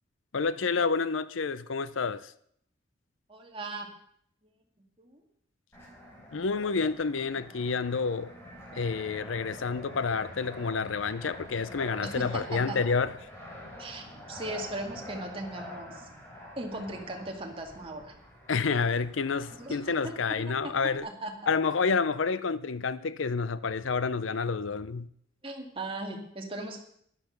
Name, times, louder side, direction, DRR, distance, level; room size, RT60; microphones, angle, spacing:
voice 1, 0.3-2.3 6.3-8.3 8.7-13.1 18.5-21.1 21.5-25.1, left 5 dB, 90° left, 0.6 m, -29 dB
voice 2, 3.3-3.9 5.0-5.2 12.0-12.8 13.8-16.1 16.6-18.2 19.6-19.8 20.0-20.7 21.0-21.3 25.4-26.8, right 2 dB, 30° right, 2.2 m, -38 dB
Fixed-wing aircraft airplane, 5.7-21.0, equal, 15° left, 4.5 m, -46 dB
12.0 x 11.5 x 5.9 m
head